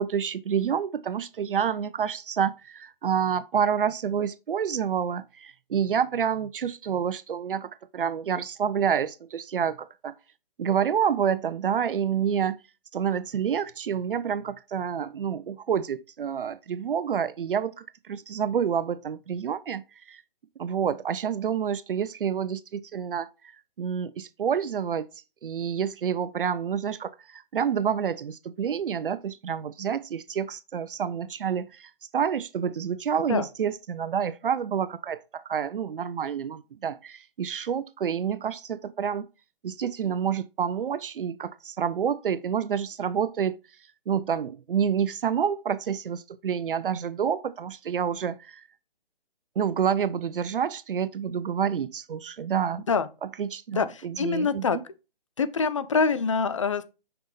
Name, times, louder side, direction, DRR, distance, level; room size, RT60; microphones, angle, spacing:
voice 1, 0.0-10.1 10.6-12.6 12.9-20.2 20.6-23.3 23.8-25.1 25.4-39.3 39.6-43.6 44.1-48.6 49.6-52.8 53.2-54.7, right 8 dB, 60° right, 0.5 m, -28 dB
voice 2, 53.8-54.8 55.4-56.8, left 5 dB, 35° left, 0.4 m, -25 dB
5.9 x 5.4 x 3.3 m
hypercardioid pair, 155°, 30 cm